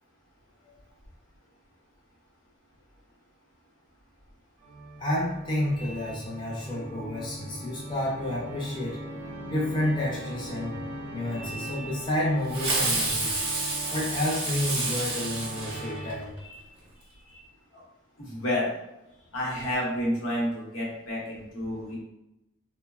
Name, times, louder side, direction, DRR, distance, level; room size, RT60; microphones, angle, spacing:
Organ, 4.6-16.4, right 1 dB, 70° right, 0.3 m, -40 dB
voice 1, 5.0-9.0 9.5-10.8 11.1-13.3 13.9-16.6 17.0-17.5, left 1 dB, 25° left, -6 dB, 0.5 m, -30 dB
Fireworks, 12.5-16.4, right 2 dB, 30° right, 0.7 m, -29 dB
voice 2, 18.2-18.7 19.3-22.0, left 1 dB, 80° left, -4 dB, 0.8 m, -30 dB
3.0 x 2.0 x 2.3 m, 0.92 s
head